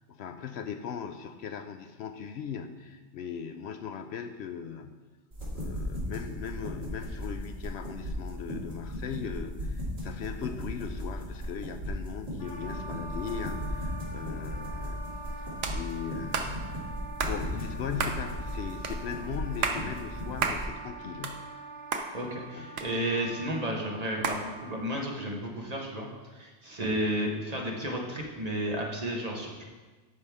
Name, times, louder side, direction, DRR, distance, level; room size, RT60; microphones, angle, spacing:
voice 1, 0.1-5.0 5.5-15.1 15.7-16.9 17.2-21.4 22.5-22.7, left 7 dB, 70° left, 8 dB, 0.8 m, -39 dB
sound 1, 5.3-20.7, left 1 dB, 55° right, 2.9 m, -37 dB
Wind instrument woodwind instrument, 12.4-25.3, right 2 dB, 45° left, 2.5 m, -44 dB
sound 2, 15.6-15.8 16.3-16.5 17.2-17.4 18.0-18.2 18.8-19.0 19.5-19.8 20.4-20.6 21.0-21.7 21.9-22.1 22.8-23.3 24.2-24.4, right 5 dB, 90° right, 1.1 m, -30 dB
voice 2, 22.1-29.6, right 1 dB, 35° right, -1 dB, 1.3 m, -32 dB
13.0 x 5.4 x 3.5 m, 1.3 s
omnidirectional pair, 1.2 m